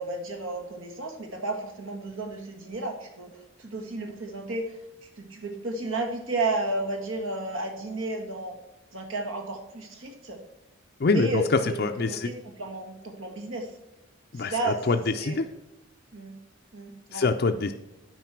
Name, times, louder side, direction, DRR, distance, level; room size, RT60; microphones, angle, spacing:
voice 1, 0.0-8.6 8.9-10.4 11.1-11.8 12.1-13.7 14.3-14.9 15.2-15.4 16.1-16.3 16.7-17.3, right 2 dB, 75° right, 3 dB, 1.9 m, -32 dB
voice 2, 11.0-11.4 11.8-12.3 14.3-15.5 17.1-17.7, left 3 dB, 45° left, 5 dB, 0.4 m, -25 dB
9.2 x 5.2 x 5.8 m, 1.0 s
head